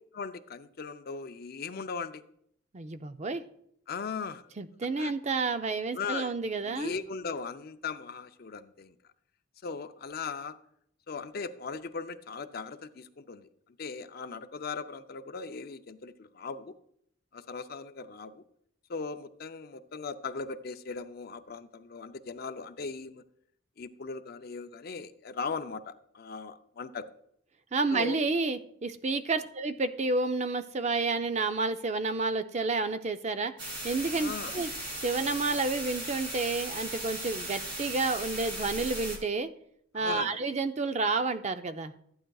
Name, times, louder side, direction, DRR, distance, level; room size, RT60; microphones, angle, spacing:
voice 1, 0.1-2.2 3.9-4.4 5.0-5.1 5.9-6.3 6.6-8.9 9.6-10.6 11.1-13.5 13.8-16.7 17.3-18.4 18.9-23.2 23.8-27.1 27.9-28.2 34.1-34.5 39.9-40.4, left 5 dB, 50° left, 10 dB, 0.5 m, -38 dB
voice 2, 2.7-3.4 4.6-6.9 27.7-33.5 33.8-34.7 35.0-39.5 39.9-41.9, right 3 dB, 35° right, 10 dB, 0.4 m, -30 dB
sound 1, 33.6-39.2, right 1 dB, 55° right, 2.8 m, -37 dB
14.5 x 8.8 x 2.3 m, 0.70 s
head